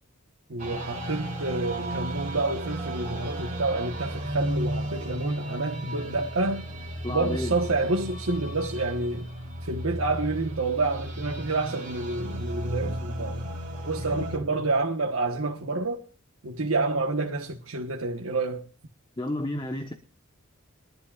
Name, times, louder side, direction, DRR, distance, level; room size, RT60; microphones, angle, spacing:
voice 1, 0.5-6.7 7.1-9.3 9.6-13.5 13.8-16.0 16.4-18.6, right 3 dB, 80° right, 1.2 m, -28 dB
sound 1, 0.6-14.4, right 1 dB, 40° right, 3.3 m, -34 dB
voice 2, 7.0-7.5 19.2-19.9, left 1 dB, 20° left, 1.1 m, -31 dB
23.0 x 11.5 x 2.4 m
head